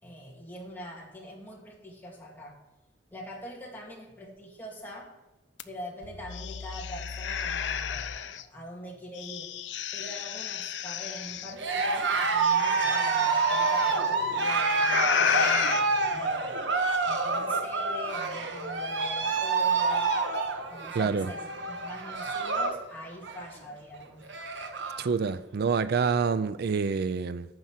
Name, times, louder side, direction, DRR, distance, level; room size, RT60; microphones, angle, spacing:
voice 1, 0.0-2.6 3.1-5.2 5.6-9.5 9.9-20.2 20.7-24.2, equal, 10° left, 2.3 m, -43 dB
sound 1, 5.6-5.7 6.0-8.4 9.2-11.5 12.4-13.9 14.7-15.8, left 7 dB, 75° left, 0.6 m, -31 dB
Cheering, 11.5-22.8 23.1-23.5 23.9-24.0 24.2-25.1, right 4 dB, 85° right, 1.2 m, -28 dB
voice 2, 21.0-21.3 25.0-27.5, right 5 dB, 60° right, 0.4 m, -27 dB
9.6 x 6.0 x 7.3 m
head